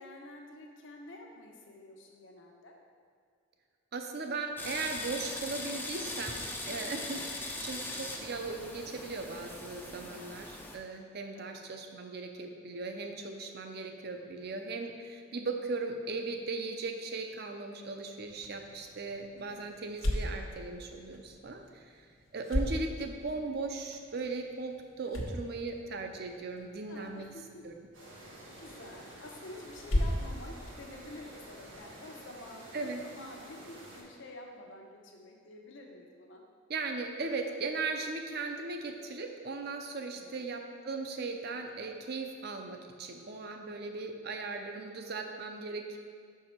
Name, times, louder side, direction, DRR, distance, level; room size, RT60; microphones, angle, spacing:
voice 1, 0.0-2.7 6.7-6.8 11.3-11.6 19.3-19.7 25.0-25.2 26.9-27.6 28.2-36.4 40.1-40.3, left 1 dB, 65° left, 0 dB, 0.8 m, -49 dB
voice 2, 3.9-6.4 6.7-22.0 22.3-27.3 27.6-27.7 32.7-33.0 36.7-46.0, right 3 dB, 50° right, 4 dB, 0.6 m, -38 dB
sound 1, 4.6-10.8, left 2 dB, 10° left, 0.4 m, -40 dB
sound 2, 18.2-31.8, left 1 dB, 85° left, 1.1 m, -38 dB
sound 3, 27.9-34.0, right 1 dB, 80° right, 1.7 m, -50 dB
6.3 x 4.7 x 4.4 m, 2.2 s
head